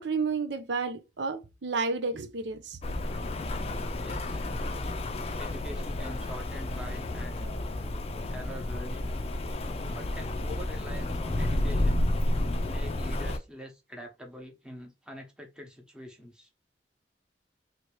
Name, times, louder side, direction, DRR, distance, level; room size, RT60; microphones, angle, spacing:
voice 1, 0.0-2.8, right 4 dB, 80° right, 0.6 m, -31 dB
Rain, 2.8-13.4, left 1 dB, 35° left, 0.5 m, -31 dB
voice 2, 4.0-4.4 5.4-7.6 8.3-9.1 9.9-12.0 12.7-16.5, equal, 5° right, 1.0 m, -45 dB
3.4 x 2.9 x 3.0 m
head